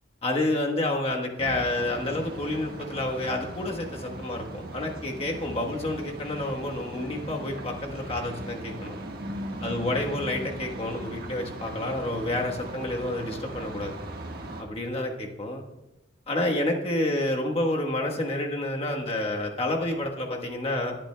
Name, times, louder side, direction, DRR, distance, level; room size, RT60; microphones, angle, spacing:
voice 1, 0.2-9.0 9.6-14.0 14.6-15.6 16.3-21.0, left 1 dB, 35° left, 1 dB, 1.2 m, -29 dB
sound 1, 1.4-14.6, right 1 dB, 55° right, 1.4 m, -38 dB
19.0 x 8.9 x 2.2 m, 0.98 s
head